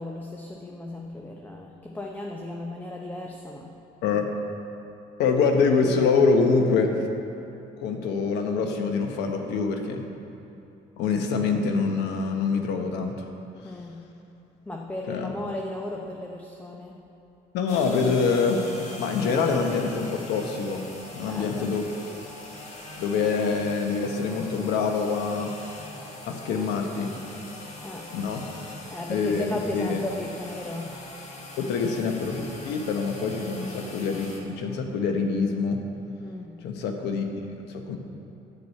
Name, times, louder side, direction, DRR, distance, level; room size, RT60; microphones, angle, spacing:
voice 1, 0.0-3.8 13.6-14.0 14.7-17.1 21.3-21.8 27.8-28.1 28.9-31.0 36.2-36.6, left 2 dB, 10° left, 0 dB, 0.8 m, -36 dB
voice 2, 5.2-7.1 7.8-10.0 11.0-13.3 15.1-15.3 17.5-20.8 21.2-22.1 23.0-25.5 26.3-27.1 28.1-28.4 29.1-30.0 31.6-35.8 36.6-37.2 37.7-38.0, left 4 dB, 85° left, 4 dB, 1.2 m, -25 dB
sound 1, 17.7-34.4, left 2 dB, 40° left, 1.9 m, -42 dB
10.0 x 6.2 x 8.4 m, 2.8 s
cardioid pair, 110°, 17 cm